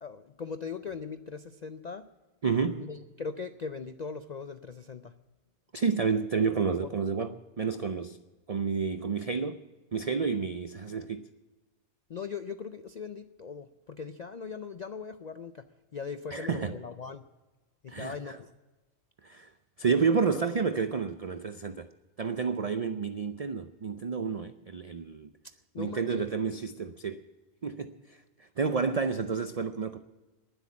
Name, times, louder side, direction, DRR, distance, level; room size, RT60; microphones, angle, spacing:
voice 1, 0.0-2.1 2.8-5.1 6.8-6.9 12.1-15.7 15.9-17.2 17.8-18.5 25.4-26.3, left 5 dB, 65° left, 0.4 m, -40 dB
voice 2, 2.4-2.9 5.7-8.2 8.5-9.6 9.9-11.3 16.3-16.8 17.9-18.4 19.2-19.5 19.8-21.9 22.2-25.3 25.8-27.2 27.6-30.0, right 5 dB, 55° right, 0.4 m, -30 dB
19.5 x 8.1 x 8.5 m
omnidirectional pair, 1.4 m